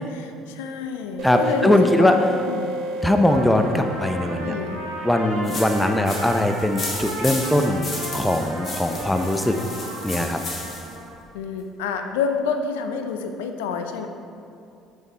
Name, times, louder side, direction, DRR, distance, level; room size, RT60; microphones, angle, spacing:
voice 1, 0.0-2.2 2.5-2.8 4.4-4.8 11.3-14.1, left 5 dB, 90° left, 6 dB, 0.5 m, -28 dB
voice 2, 1.2-2.2 3.0-4.5 5.0-7.8 8.1-9.6 10.0-10.4, left 1 dB, 5° left, 6 dB, 0.7 m, -20 dB
sound 1, 1.2-6.5, right 1 dB, 65° right, 0.8 m, -32 dB
Trumpet, 3.2-11.1, right 1 dB, 90° right, 1.3 m, -35 dB
sound 2, 5.4-11.0, left 3 dB, 40° left, 1.7 m, -34 dB
6.9 x 6.1 x 4.3 m, 2.6 s
supercardioid pair, 75°, 0 cm